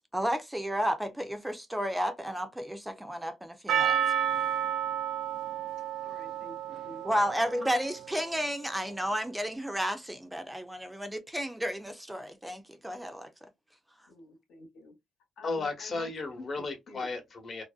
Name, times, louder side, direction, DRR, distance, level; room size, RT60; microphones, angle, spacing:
voice 1, 0.1-4.0 7.0-13.3, equal, 10° right, 0.4 m, -32 dB
Percussion, 3.7-8.2, right 9 dB, 70° right, 0.3 m, -31 dB
voice 2, 6.0-7.0 7.4-7.7 14.1-14.9 15.4-16.1 16.4-16.5 16.9-17.1, left 2 dB, 80° left, 1.0 m, -48 dB
voice 3, 15.4-17.6, left 3 dB, 45° left, 0.9 m, -34 dB
2.5 x 2.1 x 2.3 m
cardioid pair, 90°, 0 cm